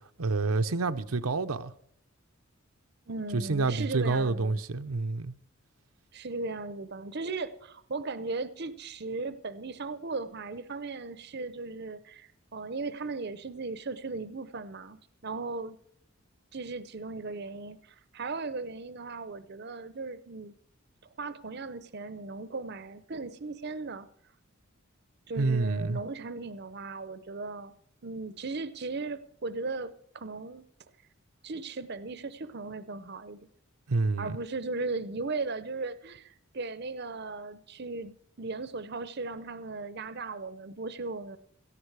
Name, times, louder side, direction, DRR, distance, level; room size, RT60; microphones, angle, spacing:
voice 1, 0.2-1.7 3.3-5.3 25.3-26.0 33.9-34.4, right 3 dB, 85° right, 0.8 m, -28 dB
voice 2, 3.1-4.6 6.1-15.8 16.5-20.5 21.2-24.1 25.3-27.7 28.0-30.6 31.4-33.4 34.2-41.4, right 3 dB, 50° right, 0.7 m, -37 dB
17.0 x 14.0 x 4.8 m
head